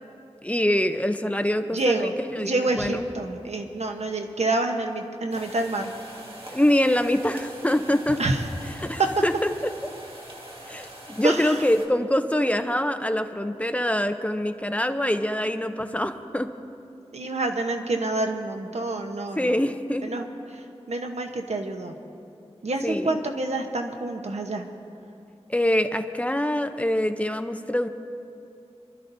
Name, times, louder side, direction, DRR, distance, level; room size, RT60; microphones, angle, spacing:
voice 1, 0.4-3.0 6.5-8.2 8.8-9.5 10.7-16.5 19.4-20.1 22.8-23.1 25.5-27.9, left 1 dB, 10° left, 8 dB, 0.6 m, -24 dB
voice 2, 1.6-5.9 8.2-8.4 9.0-9.1 11.2-11.6 17.1-19.6 20.0-20.2 20.5-21.9 22.6-24.6, right 2 dB, 85° right, 4 dB, 1.0 m, -27 dB
sound 1, 5.3-11.9, right 1 dB, 55° right, 1.9 m, -43 dB
27.0 x 12.5 x 2.7 m, 2.6 s
wide cardioid pair, 75°, 11 cm